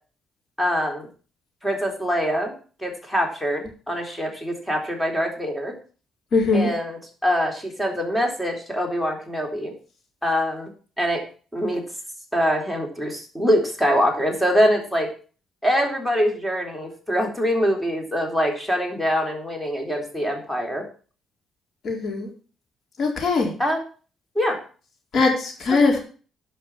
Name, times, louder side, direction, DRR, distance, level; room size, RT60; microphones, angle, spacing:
voice 1, 0.6-1.1 1.6-2.5 2.8-5.7 6.5-9.7 10.2-10.7 11.0-11.3 11.5-11.8 12.3-15.1 15.6-20.8 23.6-23.8 24.4-24.6, equal, 5° left, 2 dB, 3.8 m, -24 dB
voice 2, 6.3-6.7 21.8-22.3 23.0-23.5 25.1-26.0, left 3 dB, 60° left, 1 dB, 4.4 m, -20 dB
11.0 x 5.8 x 7.2 m, 0.39 s
cardioid pair, 90°, 0 cm